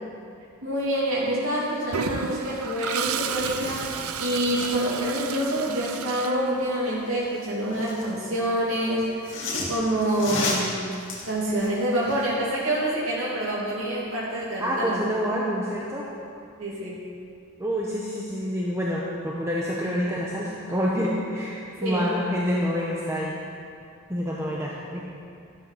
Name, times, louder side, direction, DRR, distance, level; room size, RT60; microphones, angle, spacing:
voice 1, 0.6-9.4 9.7-10.8 11.3-15.1 16.6-17.0 21.8-22.0, right 1 dB, 70° right, -7 dB, 3.0 m, -27 dB
Toilet flush, 1.9-7.0, right 6 dB, 85° right, 0.7 m, -32 dB
sound 1, 2.4-2.5 2.7-5.0 7.1-8.2 9.0-12.3 12.7-12.8, left 3 dB, 60° left, 2.7 m, -35 dB
voice 2, 14.6-16.0 17.6-23.4 24.1-25.0, equal, 15° right, -5 dB, 1.2 m, -27 dB
12.5 x 12.0 x 5.9 m, 2.4 s
head